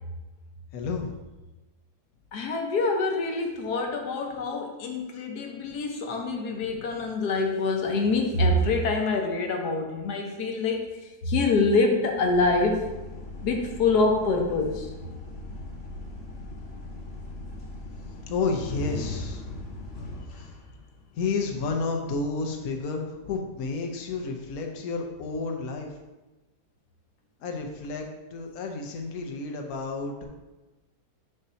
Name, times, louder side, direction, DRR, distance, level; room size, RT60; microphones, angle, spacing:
voice 1, 0.7-1.1 4.3-4.4 5.1-5.2 6.6-7.1 18.3-19.7 20.4-20.5 21.1-25.9 27.4-30.3, left 4 dB, 70° left, 2 dB, 1.2 m, -31 dB
voice 2, 2.3-10.9 11.2-12.8 13.4-14.9, left 3 dB, 90° left, 3 dB, 1.4 m, -25 dB
sound 1, 12.3-21.3, left 2 dB, 50° left, 0.9 m, -39 dB
7.2 x 2.7 x 5.6 m, 1.1 s
omnidirectional pair, 1.6 m